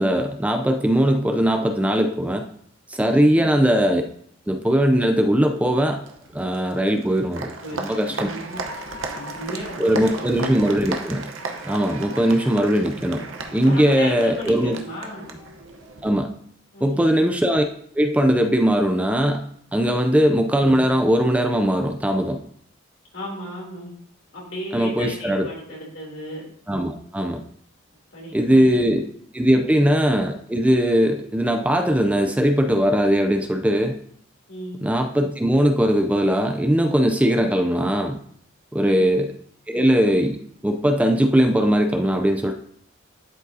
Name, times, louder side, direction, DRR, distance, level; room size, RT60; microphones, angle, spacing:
voice 1, 0.0-2.4 2.9-4.0 4.5-6.0 6.3-8.3 9.8-11.3 11.6-13.2 13.5-14.8 16.0-16.3 16.8-17.6 18.0-19.5 19.7-22.4 24.7-25.5 26.7-27.4 28.3-29.1 29.3-33.9 34.8-38.2 38.7-39.3 39.7-40.4 40.6-42.5, equal, 5° right, 5 dB, 0.4 m, -20 dB
Applause, 6.0-16.1, right 3 dB, 85° right, 0.9 m, -35 dB
voice 2, 7.6-8.6 9.1-10.7 13.6-15.4 16.7-17.2 23.1-23.9 24.3-26.4 28.1-29.0 34.5-34.8 38.8-39.1, equal, 80° left, -3 dB, 3.0 m, -35 dB
12.0 x 5.0 x 2.7 m, 0.66 s
head